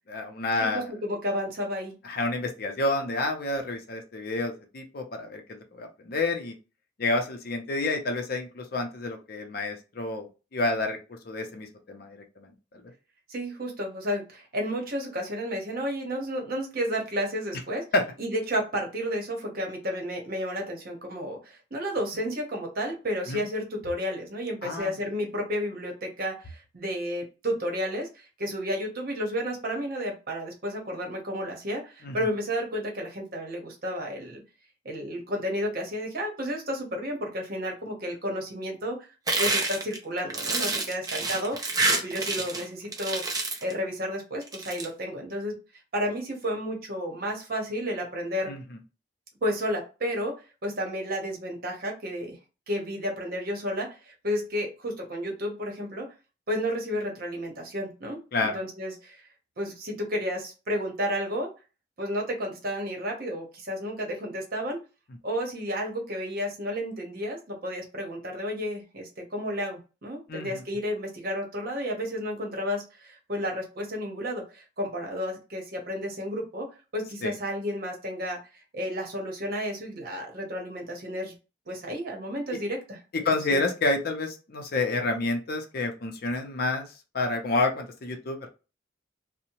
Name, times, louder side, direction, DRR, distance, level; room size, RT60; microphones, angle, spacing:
voice 1, 0.1-0.9 2.0-6.5 7.0-11.0 11.2-12.5 17.9-18.0 23.3-23.4 24.6-24.9 32.0-32.1 48.5-48.6 58.3-58.6 70.3-70.6 77.2-77.3 83.2-86.9 87.1-88.5, left 2 dB, 55° left, 4 dB, 0.5 m, -29 dB
voice 2, 0.6-1.9 13.3-17.8 18.2-34.4 34.8-39.1 39.4-41.6 42.0-45.6 45.9-48.5 49.4-50.3 50.6-52.4 52.7-56.1 56.5-59.2 59.6-61.5 62.0-64.8 65.2-81.3 81.7-83.6, equal, 50° right, 1 dB, 0.9 m, -32 dB
sound 1, 39.3-42.6 42.9-43.7 44.4-44.8, right 3 dB, 20° right, 0.5 m, -27 dB
2.7 x 2.0 x 2.8 m, 0.31 s
head